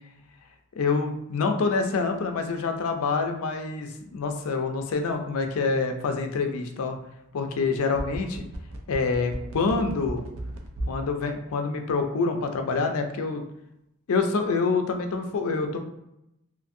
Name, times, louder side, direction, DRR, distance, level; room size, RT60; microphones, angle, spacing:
voice 1, 0.8-7.0 7.3-8.5 8.9-10.3 10.9-13.4 14.1-15.8, left 4 dB, 70° left, 5 dB, 0.4 m, -26 dB
sound 1, 7.6-11.1 11.4-11.5, right 1 dB, 65° right, 0.5 m, -35 dB
2.6 x 2.5 x 2.6 m, 0.83 s
head